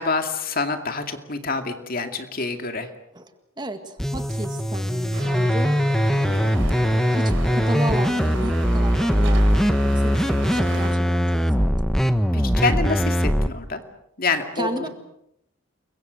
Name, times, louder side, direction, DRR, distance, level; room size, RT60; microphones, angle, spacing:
voice 1, 0.0-2.9 6.3-6.7 12.3-13.8 14.2-14.9, left 3 dB, 45° left, 7 dB, 2.4 m, -27 dB
voice 2, 3.1-5.8 7.1-11.8 14.6-14.9, right 1 dB, 20° right, 7 dB, 1.9 m, -33 dB
sound 1, 4.0-13.5, equal, ahead, 1.1 m, -21 dB
sound 2, 5.1-11.0, right 3 dB, 60° right, 3.4 m, -36 dB
29.0 x 23.0 x 6.5 m, 0.79 s
head